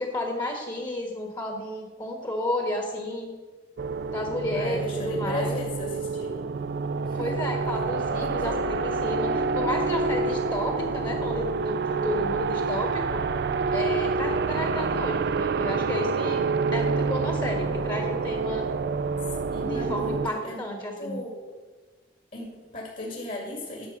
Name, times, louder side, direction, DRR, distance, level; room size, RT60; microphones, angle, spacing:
voice 1, 0.0-3.3 4.1-5.5 7.1-13.2 13.7-16.4 16.7-18.6 19.5-21.2, left 1 dB, 25° left, 2 dB, 1.4 m, -32 dB
sound 1, 3.8-20.3, right 4 dB, 60° right, 0.4 m, -27 dB
voice 2, 4.5-6.5 7.1-7.3 8.2-8.6 19.5-20.6 21.0-21.5 22.3-23.9, left 1 dB, 50° left, 0 dB, 2.4 m, -36 dB
12.0 x 6.3 x 5.4 m, 1.2 s
head